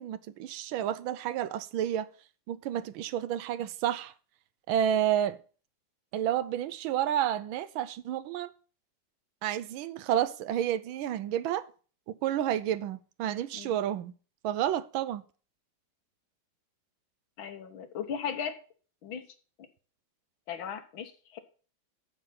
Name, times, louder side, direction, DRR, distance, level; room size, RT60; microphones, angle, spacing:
voice 1, 0.0-2.1 2.5-4.1 4.7-5.4 6.1-8.5 9.4-11.7 12.1-14.1 14.4-15.2, right 10 dB, 90° right, 1.5 m, -30 dB
voice 2, 17.4-18.6 19.0-19.3 19.6-19.7 20.5-21.4, left 7 dB, 80° left, 1.9 m, -37 dB
8.9 x 7.0 x 5.8 m
omnidirectional pair, 2.2 m